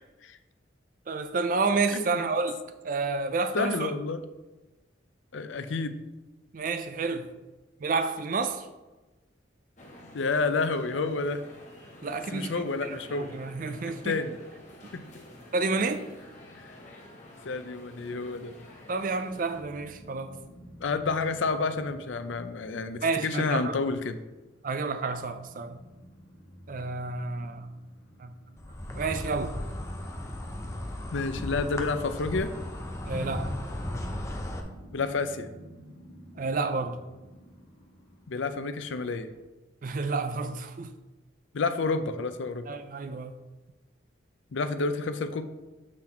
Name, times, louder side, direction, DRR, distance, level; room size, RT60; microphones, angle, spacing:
voice 1, 1.1-3.9 6.5-7.3 7.8-8.7 12.0-14.2 15.5-16.0 18.9-20.3 23.0-23.8 24.6-25.8 26.7-27.8 28.2-28.3 29.0-29.5 33.1-33.5 36.4-37.0 39.8-40.9 42.7-43.3, right 4 dB, 45° right, 0.4 m, -30 dB
voice 2, 1.9-2.2 3.5-4.2 5.3-6.0 10.1-11.4 12.3-13.3 13.8-14.4 14.9-15.0 16.6-16.7 17.4-18.5 20.8-24.2 31.1-32.5 34.9-35.5 38.3-39.3 41.5-42.6 44.5-45.4, left 4 dB, 80° left, 0.5 m, -29 dB
sound 1, 9.8-19.6, left 1 dB, 40° left, 1.0 m, -49 dB
sound 2, 19.5-39.4, equal, 55° left, 1.3 m, -53 dB
Insect, 28.6-34.6, left 1 dB, 15° left, 0.6 m, -35 dB
7.5 x 4.0 x 4.3 m
head